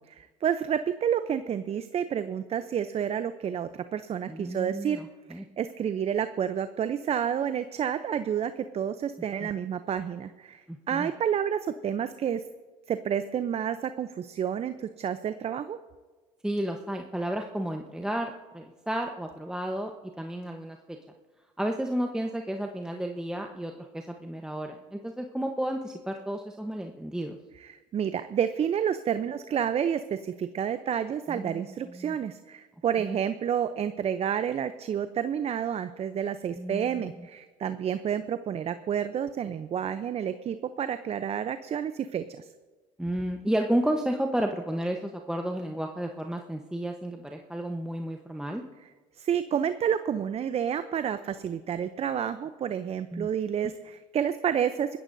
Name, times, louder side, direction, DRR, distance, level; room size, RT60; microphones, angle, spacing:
voice 1, 0.1-5.0 5.3-12.4 12.9-15.8 27.6-42.5 49.2-55.0, right 8 dB, 40° right, 11 dB, 0.7 m, -30 dB
voice 2, 4.3-5.4 9.4-9.5 10.7-11.1 16.4-19.9 20.2-20.8 21.6-27.4 31.3-32.2 33.0-33.2 36.6-37.0 43.0-48.6 53.1-53.3, right 1 dB, 5° right, 3 dB, 1.1 m, -32 dB
25.0 x 14.0 x 2.7 m, 1.3 s
hypercardioid pair, 75°, 16 cm